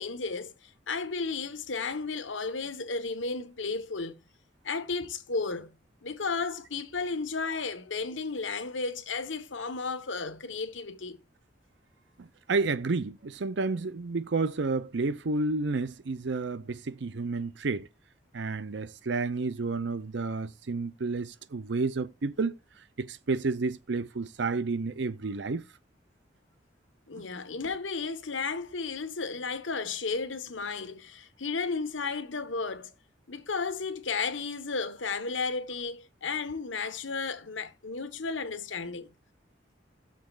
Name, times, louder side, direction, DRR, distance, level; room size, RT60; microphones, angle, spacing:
voice 1, 0.0-4.2 4.6-5.7 6.0-11.2 27.1-32.9 33.3-39.1, left 4 dB, 85° left, 1.3 m, -33 dB
voice 2, 12.2-17.9 18.3-25.6 27.2-27.3, right 3 dB, 70° right, 0.6 m, -31 dB
17.0 x 6.8 x 2.4 m
head